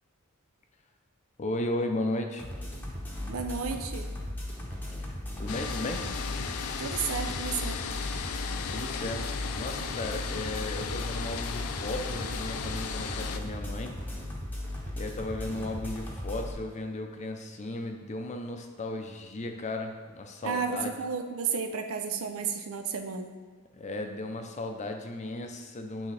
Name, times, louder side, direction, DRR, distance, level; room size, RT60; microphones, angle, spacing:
voice 1, 1.4-2.4 5.0-6.1 8.7-9.3 9.5-14.0 15.0-20.9 23.8-26.1, left 2 dB, 35° left, 4 dB, 0.5 m, -35 dB
sound 1, 2.4-16.5, left 1 dB, 10° left, 0.9 m, -37 dB
voice 2, 3.3-4.1 6.8-7.8 20.4-23.3, right 6 dB, 70° right, 6 dB, 0.5 m, -32 dB
sound 2, 5.5-13.4, left 7 dB, 85° left, 0.4 m, -36 dB
8.2 x 3.6 x 3.3 m, 1.5 s
head